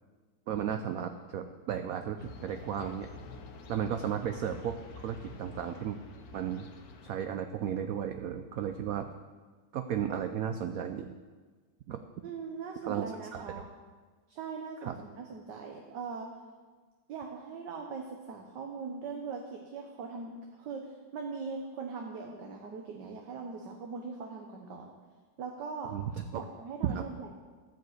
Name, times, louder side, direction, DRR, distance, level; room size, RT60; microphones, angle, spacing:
voice 1, 0.5-3.1 3.7-6.0 6.3-6.7 7.0-9.1 9.7-11.1 11.9-12.0 12.8-13.1 13.3-13.7 14.8-14.9 25.9-26.4 26.8-27.0, right 9 dB, 80° right, 8 dB, 0.7 m, -34 dB
sound 1, 2.2-7.2, left 3 dB, 60° left, 1.3 m, -48 dB
voice 2, 12.2-13.7 14.3-16.3 17.1-24.9 25.4-25.9 26.3-27.4, right 5 dB, 65° right, 2 dB, 1.5 m, -41 dB
13.0 x 5.2 x 7.8 m, 1.4 s
omnidirectional pair, 2.1 m